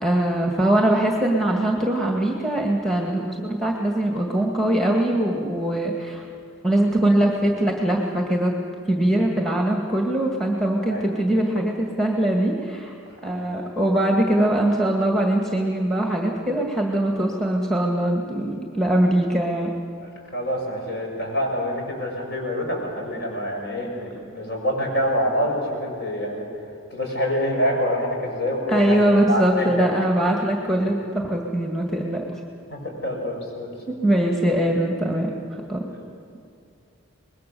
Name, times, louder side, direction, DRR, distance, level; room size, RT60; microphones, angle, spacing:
voice 1, 0.0-6.2 6.6-8.5 8.9-12.9 13.2-19.7 28.7-32.4 33.9-35.3 35.7-35.8, right 1 dB, ahead, 0 dB, 1.9 m, -22 dB
voice 2, 10.7-11.1 20.0-26.5 26.9-29.9 32.7-33.7 35.9-36.0, equal, 55° left, 0 dB, 6.3 m, -26 dB
25.5 x 21.0 x 6.9 m, 2.4 s
head